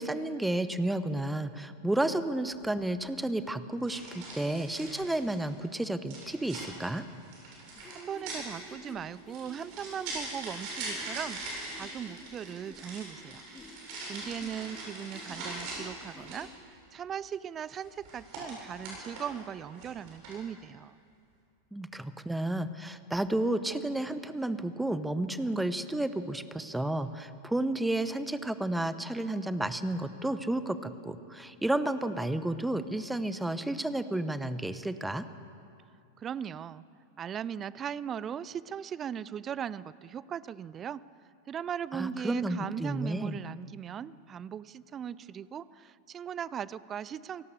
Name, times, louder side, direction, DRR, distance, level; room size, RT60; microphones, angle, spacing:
voice 1, 0.0-7.0 21.7-35.2 41.9-43.4, right 1 dB, 5° right, 13 dB, 1.0 m, -31 dB
sound 1, 2.5-2.7 3.9-5.5 6.1-16.6 17.7-19.4 19.7-20.5, right 2 dB, 45° right, 8.0 m, -42 dB
sound 2, 7.8-16.5, left 3 dB, 15° left, 2.3 m, -52 dB
voice 2, 7.9-11.4 11.7-13.4 14.1-21.0 36.2-36.8 37.2-41.0 41.5-47.4, right 8 dB, 25° right, 20 dB, 0.5 m, -38 dB
28.0 x 18.0 x 6.7 m, 2.5 s
figure-of-eight pair, 90°, 0 cm